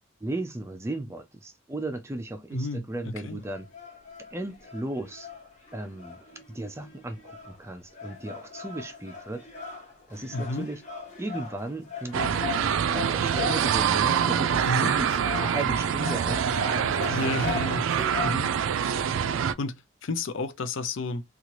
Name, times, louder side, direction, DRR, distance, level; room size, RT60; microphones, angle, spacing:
voice 1, 0.2-3.7 4.2-5.3 5.7-9.5 10.1-10.8 11.2-12.5 12.9-15.1 15.4-17.2, right 1 dB, 15° right, 0.4 m, -35 dB
voice 2, 2.5-3.4 10.3-10.7 14.6-14.9 17.1-17.9 18.2-18.5 19.6-21.2, left 3 dB, 80° left, 0.5 m, -31 dB
sound 1, 3.4-18.3, left 5 dB, 35° left, 0.8 m, -39 dB
sound 2, 12.1-19.5, right 8 dB, 85° right, 0.3 m, -25 dB
2.7 x 2.4 x 3.0 m
head